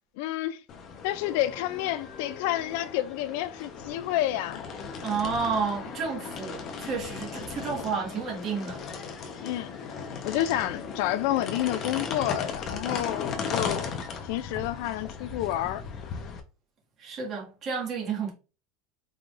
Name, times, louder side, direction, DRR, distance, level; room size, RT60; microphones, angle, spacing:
voice 1, 0.2-0.6 1.0-4.6 9.4-9.7 10.2-13.9 14.2-15.8, left 13 dB, 65° left, 0.3 m, -29 dB
sound 1, 0.7-16.4, left 5 dB, 35° left, 0.8 m, -37 dB
voice 2, 5.0-8.8 17.0-18.3, right 5 dB, 35° right, 1.8 m, -31 dB
4.9 x 3.6 x 2.5 m
supercardioid pair, 150°, 0 cm